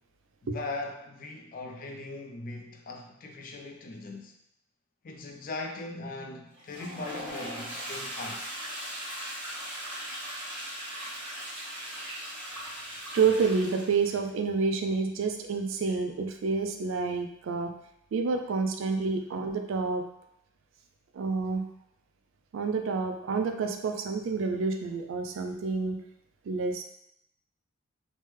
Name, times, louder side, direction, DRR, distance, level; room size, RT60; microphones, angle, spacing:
voice 1, 0.4-4.3 5.0-8.4, left 2 dB, 40° left, 3 dB, 0.3 m, -39 dB
Toilet flush, 6.5-14.2, right 1 dB, 5° right, 1.1 m, -39 dB
voice 2, 13.1-17.8 18.1-20.1 21.1-21.7 22.5-26.0 26.4-26.8, right 4 dB, 70° right, 5 dB, 0.3 m, -28 dB
3.1 x 2.1 x 3.1 m, 0.76 s
head